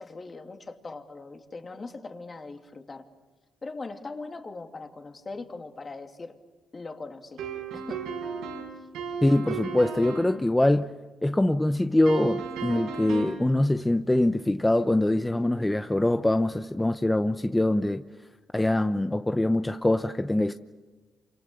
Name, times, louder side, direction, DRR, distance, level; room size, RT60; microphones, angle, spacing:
voice 1, 0.0-3.1 3.6-6.4 6.7-7.4 7.7-8.1, left 3 dB, 30° left, 2.8 m, -40 dB
sound 1, 7.4-10.4 12.1-13.5, right 5 dB, 85° right, 6.0 m, -34 dB
voice 2, 9.2-10.9 11.2-18.0 18.5-20.5, left 1 dB, 10° left, 0.8 m, -24 dB
28.5 x 26.5 x 6.9 m
cardioid pair, 90°, 0 cm